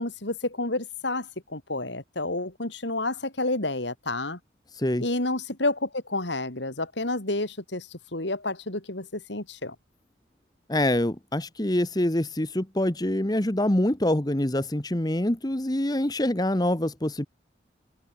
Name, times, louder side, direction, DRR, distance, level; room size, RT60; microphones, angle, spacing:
voice 1, 0.0-4.4 5.0-9.8, left 2 dB, 70° left, 3.8 m, -30 dB
voice 2, 10.7-17.3, left 1 dB, 20° left, 1.2 m, -25 dB
open air
head